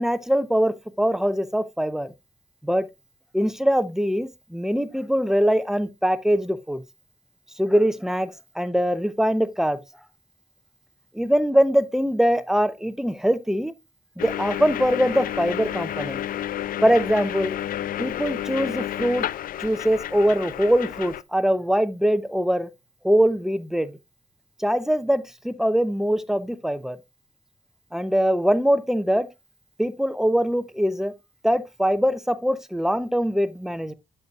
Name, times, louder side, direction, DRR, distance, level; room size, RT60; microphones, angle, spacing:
voice 1, 0.0-2.1 2.6-2.9 3.3-6.8 7.6-8.3 8.5-9.8 11.1-13.7 14.2-16.2 16.8-17.5 18.0-19.3 19.6-22.7 23.0-24.0 24.6-27.0 27.9-29.3 29.8-31.1 31.4-33.9, equal, 5° right, 0.9 m, -22 dB
sound 1, 14.2-21.2, left 12 dB, 60° left, 0.4 m, -30 dB
7.8 x 7.1 x 2.5 m
supercardioid pair, 50°, 16 cm